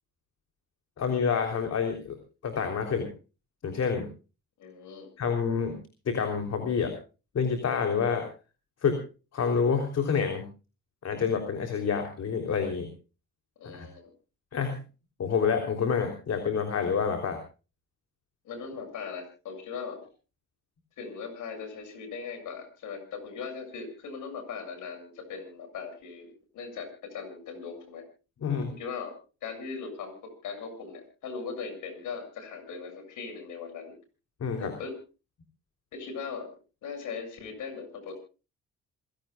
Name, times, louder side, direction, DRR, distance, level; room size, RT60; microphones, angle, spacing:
voice 1, 1.0-2.2 2.4-3.1 3.6-4.1 5.2-5.8 6.1-6.9 7.3-8.3 8.8-9.0 9.3-10.5 11.0-12.9 13.7-13.9 14.5-14.8 15.2-17.4 28.4-28.7 34.4-34.7, left 6 dB, 55° left, 5 dB, 3.6 m, -28 dB
voice 2, 4.6-5.1 13.6-14.1 18.4-20.0 21.0-28.0 28.7-29.1 29.4-34.0 34.6-35.0 35.9-36.5 36.8-38.1, left 5 dB, 80° left, 8 dB, 7.1 m, -39 dB
27.5 x 16.5 x 2.4 m, 0.34 s
cardioid pair, 90°, 30 cm